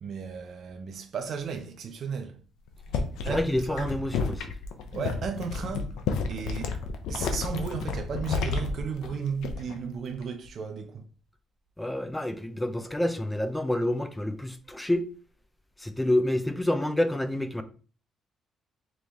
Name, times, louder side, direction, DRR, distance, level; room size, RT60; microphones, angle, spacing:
voice 1, 0.0-2.4 3.2-4.0 4.9-5.9 6.3-6.8 7.1-11.0, right 6 dB, 60° right, 0.6 m, -34 dB
sound 1, 2.7-9.8 10.1-10.5, left 5 dB, 90° left, 0.6 m, -31 dB
voice 2, 3.3-4.5 11.8-15.1 15.8-17.6, left 1 dB, 10° left, 0.5 m, -28 dB
3.4 x 3.2 x 4.1 m
cardioid pair, 90°, 0 cm